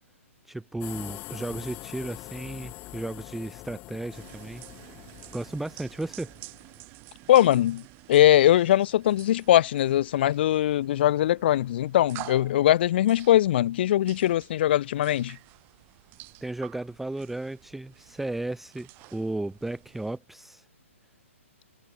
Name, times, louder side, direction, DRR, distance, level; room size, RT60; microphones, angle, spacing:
voice 1, 0.4-4.6 5.3-6.3 16.4-20.7, right 2 dB, 5° right, 0.6 m, -34 dB
sound 1, 0.8-6.8, left 20 dB, 25° left, 1.8 m, -44 dB
sound 2, 4.1-20.2, right 24 dB, 30° right, 4.2 m, -49 dB
voice 2, 7.3-7.8 8.1-15.4, left 12 dB, 45° left, 0.4 m, -21 dB
hypercardioid pair, 140°, 7 cm